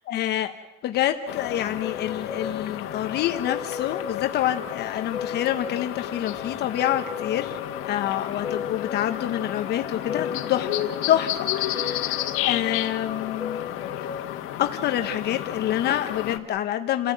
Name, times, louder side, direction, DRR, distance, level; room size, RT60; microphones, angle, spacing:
voice 1, 0.1-0.5 0.8-7.6 7.9-13.6 14.6-17.1, left 12 dB, 55° left, 7 dB, 1.1 m, -27 dB
sound 1, 1.0-14.2, left 7 dB, 10° left, 3.5 m, -36 dB
sound 2, 1.3-16.4, left 12 dB, 80° left, 1.7 m, -32 dB
29.5 x 15.0 x 9.3 m, 1.2 s
cardioid pair, 175°, 21 cm